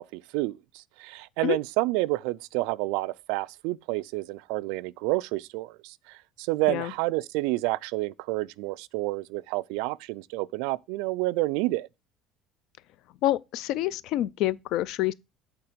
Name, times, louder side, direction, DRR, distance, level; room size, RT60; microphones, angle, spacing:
voice 1, 0.0-11.9, right 20 dB, 75° right, 0.3 m, -29 dB
voice 2, 13.2-15.1, left 14 dB, 50° left, 0.4 m, -27 dB
8.7 x 3.7 x 5.0 m
cardioid pair, 180°, 0 cm